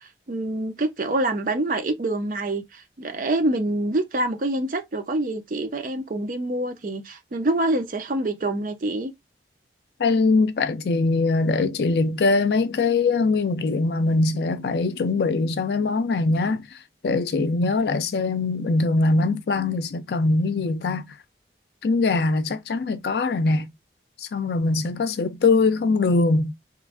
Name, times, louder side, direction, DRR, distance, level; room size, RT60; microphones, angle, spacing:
voice 1, 0.0-9.1, right 2 dB, 45° right, 0.5 m, -26 dB
voice 2, 10.0-16.7 17.0-21.1 21.8-23.7 24.2-26.5, left 3 dB, 65° left, 0.4 m, -22 dB
3.0 x 2.5 x 2.4 m
head